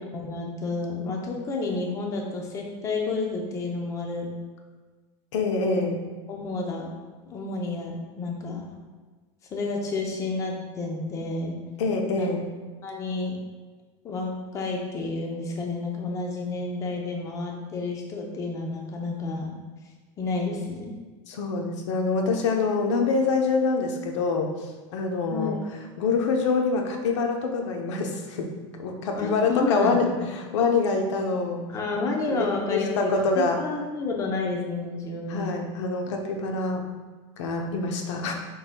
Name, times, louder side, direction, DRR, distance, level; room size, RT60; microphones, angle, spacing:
voice 1, 0.1-4.3 5.7-5.9 6.3-6.9 7.3-8.7 9.5-11.5 12.2-12.3 12.8-13.4 14.0-19.5 20.2-21.0 25.3-25.6 29.2-30.0 31.7-35.5, left 3 dB, 20° left, 0 dB, 0.6 m, -30 dB
voice 2, 5.3-6.0 11.8-12.5 21.3-24.5 24.9-25.6 26.0-28.5 28.8-30.1 30.3-31.6 32.3-33.6 35.3-36.8 37.4-38.3, left 4 dB, 85° left, 3 dB, 0.8 m, -25 dB
4.8 x 4.5 x 2.2 m, 1.4 s
supercardioid pair, 155°, 15 cm